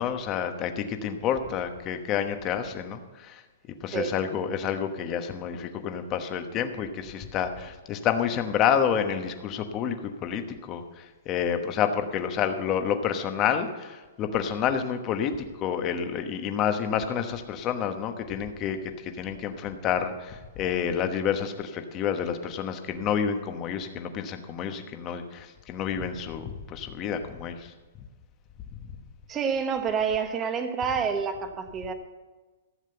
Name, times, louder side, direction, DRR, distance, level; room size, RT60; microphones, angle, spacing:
voice 1, 0.0-3.4 3.8-18.8 19.0-27.7 28.7-28.8, left 8 dB, 25° left, 7 dB, 1.1 m, -29 dB
voice 2, 29.3-31.9, right 6 dB, 20° right, 7 dB, 1.1 m, -28 dB
14.5 x 7.4 x 6.9 m, 1.2 s
hypercardioid pair, 155°, 0 cm